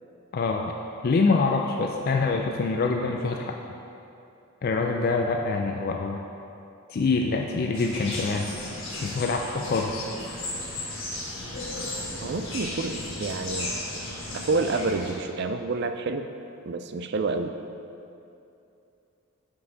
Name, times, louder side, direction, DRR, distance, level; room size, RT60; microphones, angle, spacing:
voice 1, 0.3-0.7 1.0-3.6 4.6-6.2 6.9-8.5 9.0-10.1, left 4 dB, 40° left, 2 dB, 0.3 m, -25 dB
sound 1, 7.7-15.1, left 1 dB, 60° left, 1.4 m, -35 dB
voice 2, 12.2-13.8 14.3-16.3 16.6-17.5, right 3 dB, 50° right, 8 dB, 0.4 m, -28 dB
8.1 x 5.4 x 3.9 m, 2.7 s
head